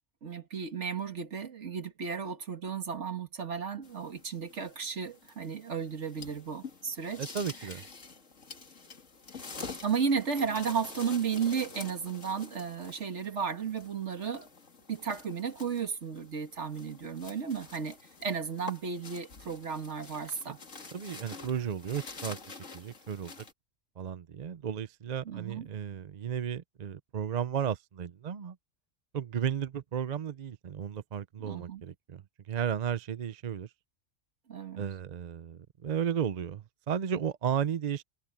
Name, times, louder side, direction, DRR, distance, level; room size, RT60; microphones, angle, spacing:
voice 1, 0.2-7.3 7.6-7.7 9.8-14.5 14.9-20.6 25.2-25.7 31.4-31.8 34.5-34.8, right 6 dB, 65° right, 1.9 m, -34 dB
sound 1, 3.8-23.5, left 4 dB, 75° left, 2.6 m, -48 dB
voice 2, 7.2-7.8 20.9-22.4 22.7-23.4 24.0-28.6 29.1-32.2 32.5-33.7 34.8-38.0, right 8 dB, 45° right, 0.6 m, -34 dB
omnidirectional pair, 1.3 m